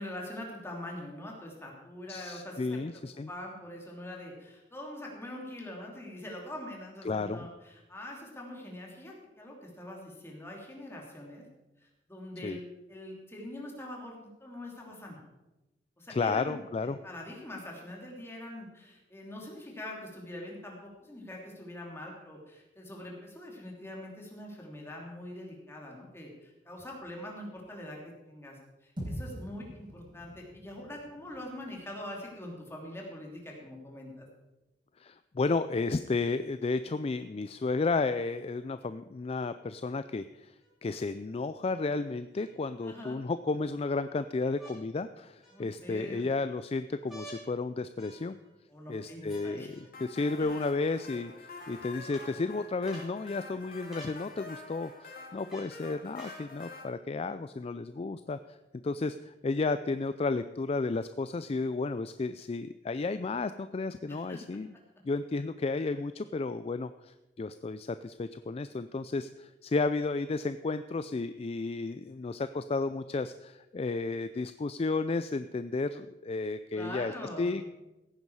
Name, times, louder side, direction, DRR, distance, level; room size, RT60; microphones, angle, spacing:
voice 1, 0.0-2.8 3.1-11.5 11.8-12.6 12.9-15.2 16.0-34.3 42.8-43.2 45.5-46.3 48.7-49.7 50.4-50.6 64.1-64.6 76.7-77.6, left 1 dB, 15° left, -1 dB, 2.9 m, -43 dB
voice 2, 2.1-3.3 7.0-7.5 12.4-12.6 16.1-17.0 35.0-40.5 40.8-48.4 48.9-58.6 58.8-64.7 65.0-77.1 77.4-77.7, left 3 dB, 35° left, 12 dB, 0.4 m, -32 dB
sound 1, 29.0-33.3, equal, 30° right, 4.7 m, -44 dB
sound 2, 40.6-40.7 42.3-43.0 44.6-44.8 45.4-45.9 47.1-47.4 48.0-48.5 49.3-49.8 50.8-50.9 52.1-52.2 52.9-53.1 53.9-54.2 55.5-55.7 56.2-56.4 57.3-57.4, right 1 dB, ahead, 4.8 m, -50 dB
sound 3, 49.9-56.8, left 3 dB, 55° left, 2.8 m, -47 dB
16.0 x 9.6 x 4.8 m, 1.0 s
head